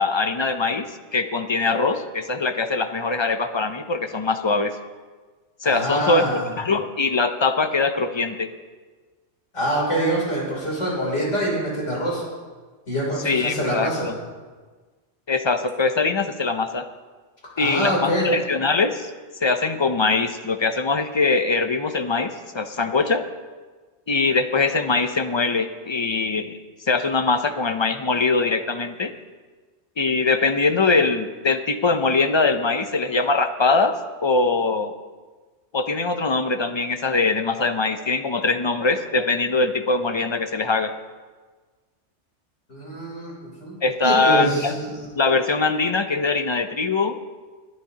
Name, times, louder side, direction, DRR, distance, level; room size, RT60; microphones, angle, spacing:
voice 1, 0.0-4.8 5.6-6.2 6.6-8.5 13.2-14.1 15.3-16.8 17.6-19.1 19.4-23.3 24.1-29.1 30.0-34.9 35.7-40.9 43.8-44.7 45.2-47.1, left 3 dB, 45° left, 8 dB, 0.3 m, -22 dB
voice 2, 5.6-6.5 9.5-12.2 12.9-14.1 17.6-18.3 42.7-43.3 43.6-43.7 44.0-45.0, right 1 dB, 80° left, -4 dB, 3.6 m, -25 dB
21.5 x 9.5 x 2.8 m, 1.4 s
omnidirectional pair, 1.2 m